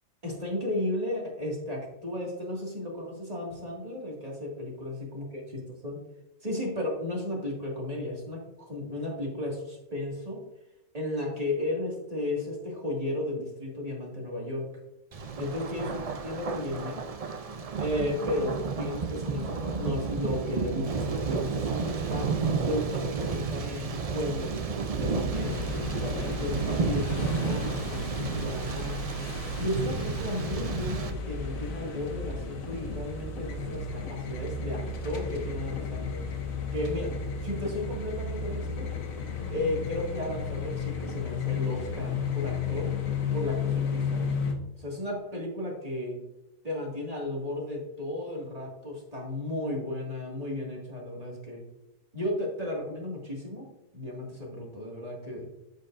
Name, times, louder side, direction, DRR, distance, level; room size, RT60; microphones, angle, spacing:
voice 1, 0.2-5.4 5.8-6.0 6.4-10.4 10.9-14.7 15.4-17.0 17.8-22.3 22.6-25.6 26.0-29.0 29.6-36.2 36.7-37.1 37.4-38.9 39.5-42.9 43.3-44.3 44.8-46.2 46.6-51.6 52.1-53.7 53.9-55.5, left 1 dB, 30° right, -2 dB, 2.2 m, -34 dB
Thunder, 15.1-31.1, right 5 dB, 45° right, 0.4 m, -32 dB
sound 1, 25.3-44.5, left 4 dB, 80° left, 1.4 m, -33 dB
13.5 x 5.2 x 2.5 m, 0.89 s
omnidirectional pair, 1.4 m